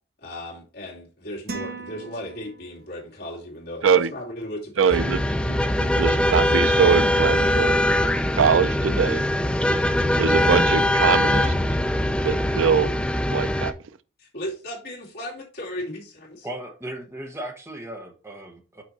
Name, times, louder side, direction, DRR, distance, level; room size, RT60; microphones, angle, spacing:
voice 1, 0.2-5.2 14.2-16.5, left 1 dB, 55° left, 2.4 m, -36 dB
sound 1, 1.5-3.0, right 4 dB, 50° right, 1.2 m, -37 dB
voice 2, 4.8-5.2 5.8-7.8 8.4-9.2 10.2-11.5 12.2-12.9 13.3-13.7, right 6 dB, 85° right, 0.4 m, -22 dB
sound 2, 4.9-13.7, left 1 dB, 5° left, 0.4 m, -22 dB
voice 3, 16.4-18.8, right 1 dB, 15° right, 1.0 m, -36 dB
6.2 x 4.6 x 4.1 m
head